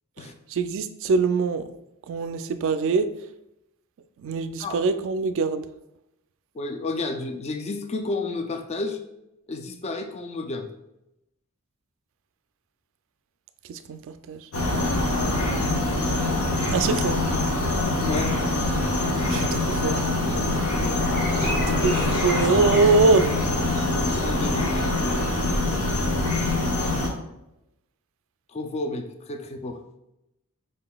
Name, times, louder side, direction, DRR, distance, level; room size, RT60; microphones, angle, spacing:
voice 1, 0.5-1.6 2.1-3.1 4.2-5.6 13.7-14.0 14.3-14.4 16.7-17.2 19.3-20.0 21.8-21.9 22.2-23.3, right 4 dB, 60° right, 10 dB, 0.3 m, -23 dB
voice 2, 6.5-9.0 9.5-10.7 18.1-18.3 19.3-19.4 20.2-21.0 21.4-22.0 24.2-24.7 28.5-29.8, left 2 dB, 30° left, 6 dB, 0.3 m, -31 dB
sound 1, 14.5-27.1, left 2 dB, 85° left, 0.9 m, -24 dB
sound 2, 19.2-24.6, left 1 dB, 45° left, 0.8 m, -37 dB
5.1 x 3.7 x 2.3 m, 0.88 s
head